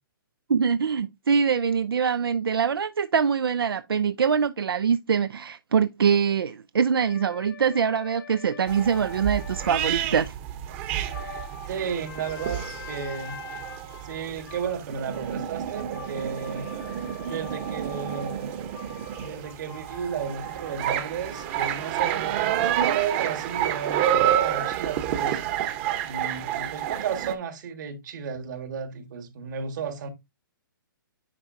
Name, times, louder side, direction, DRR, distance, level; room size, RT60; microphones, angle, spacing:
voice 1, 0.5-10.3, right 6 dB, 90° right, 0.5 m, -24 dB
sound 1, 7.0-9.8 10.8-24.0, left 8 dB, 70° left, 1.3 m, -46 dB
sound 2, 8.7-27.3, right 11 dB, 35° right, 1.0 m, -29 dB
voice 2, 11.7-12.6 12.9-13.4 14.0-16.7 17.2-18.5 19.2-25.4 26.0-30.1, right 7 dB, 55° right, 1.7 m, -33 dB
9.6 x 4.6 x 2.6 m
hypercardioid pair, 145°, 12 cm